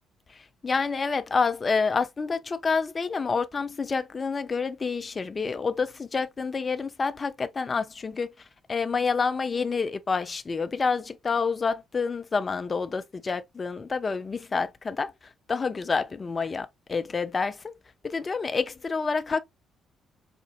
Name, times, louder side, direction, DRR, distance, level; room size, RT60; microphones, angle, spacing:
voice 1, 0.3-15.1 15.5-17.7 18.0-19.4, left 4 dB, 35° left, 0.6 m, -28 dB
5.1 x 2.6 x 2.4 m
figure-of-eight pair, 45°, 0 cm